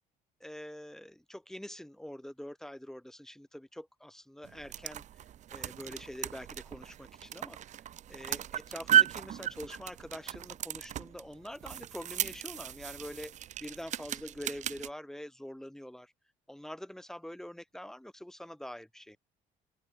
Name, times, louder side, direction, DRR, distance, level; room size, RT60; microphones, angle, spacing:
voice 1, 0.4-5.0 5.5-7.8 8.1-13.3 13.6-16.1 16.5-19.2, left 1 dB, 5° left, 3.1 m, -45 dB
sound 1, 4.4-14.9, right 11 dB, 45° right, 0.5 m, -34 dB
cardioid pair, 110°, 17 cm